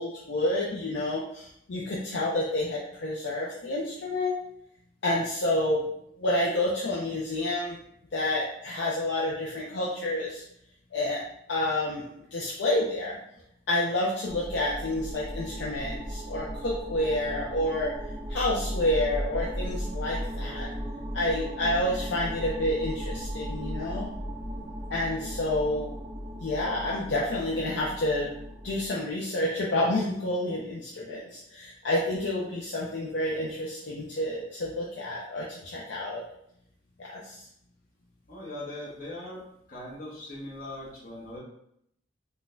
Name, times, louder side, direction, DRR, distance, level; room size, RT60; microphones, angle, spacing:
voice 1, 0.0-4.3 5.0-5.9 6.2-7.8 8.1-10.4 10.9-11.2 11.5-13.2 13.7-17.9 18.3-20.7 21.1-24.1 24.9-25.9 26.4-28.3 28.6-36.2 37.0-37.4, left 1 dB, 65° left, -4 dB, 0.5 m, -29 dB
sound 1, 14.3-28.9, equal, 10° right, 0.4 m, -36 dB
voice 2, 38.3-39.4 39.7-41.4, left 1 dB, 50° left, -5 dB, 1.0 m, -40 dB
3.8 x 2.3 x 2.5 m, 0.73 s
head